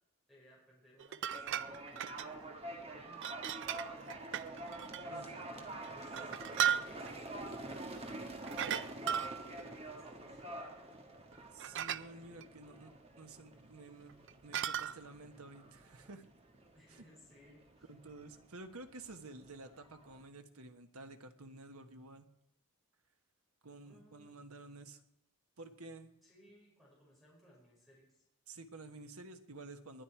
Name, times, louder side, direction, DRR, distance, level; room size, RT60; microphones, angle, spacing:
voice 1, 0.3-2.5 2.8-4.1 5.0-6.3 6.8-10.6 16.7-17.9 23.8-24.4 26.2-28.2, equal, ahead, -6 dB, 5.2 m, -63 dB
sound 1, 1.0-2.3 3.2-5.1 5.7-7.2 8.5-9.7 11.3-11.4 11.6-12.0 12.4-12.5 14.1-15.0, right 9 dB, 55° right, 0.5 m, -36 dB
sound 2, 1.3-20.2, right 1 dB, 25° right, 1.6 m, -47 dB
voice 2, 11.5-14.1 14.4-16.2 16.9-17.0 17.9-22.3 23.6-25.0 25.6-26.1 28.5-30.0, right 2 dB, 80° right, 7 dB, 1.3 m, -51 dB
20.5 x 10.5 x 4.6 m, 0.85 s
head